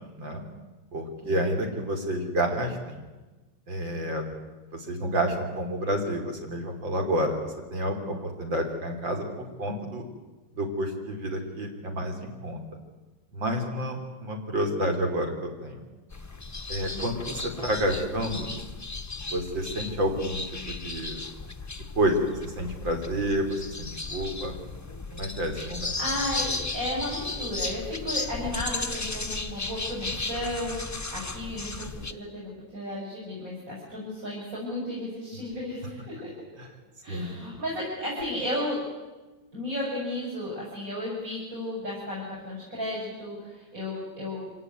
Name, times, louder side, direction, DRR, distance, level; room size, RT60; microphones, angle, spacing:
voice 1, 0.9-3.0 3.7-4.2 4.7-10.1 10.5-12.6 13.3-15.8 16.7-18.5 19.3-20.4 20.7-21.2 22.0-24.5 25.1-25.9 36.6-36.7 37.1-37.3, equal, 70° right, 3 dB, 4.2 m, -29 dB
sound 1, 16.1-32.1, left 3 dB, 20° left, 0.4 m, -35 dB
voice 2, 26.0-36.3 37.0-38.8 39.5-44.5, left 1 dB, 45° right, -5 dB, 7.1 m, -34 dB
25.5 x 17.5 x 9.5 m, 1.2 s
omnidirectional pair, 2.1 m